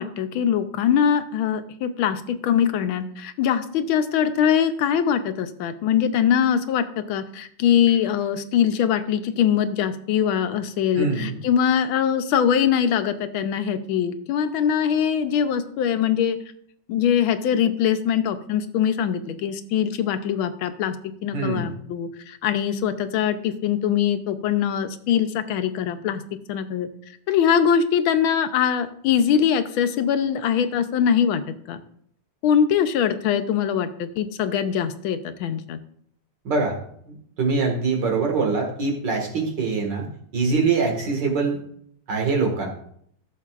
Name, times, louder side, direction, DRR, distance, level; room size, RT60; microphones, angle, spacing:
voice 1, 0.0-16.4 16.9-20.9 21.2-26.2 26.5-26.9 27.3-31.4 31.7-31.8 32.4-35.8, left 8 dB, 85° left, 9 dB, 1.5 m, -22 dB
voice 2, 10.9-11.4 21.3-21.7 36.4-36.7 37.1-40.1 40.3-41.6 42.1-42.7, right 4 dB, 60° right, 1 dB, 2.3 m, -23 dB
14.5 x 6.7 x 2.4 m, 0.66 s
omnidirectional pair, 2.2 m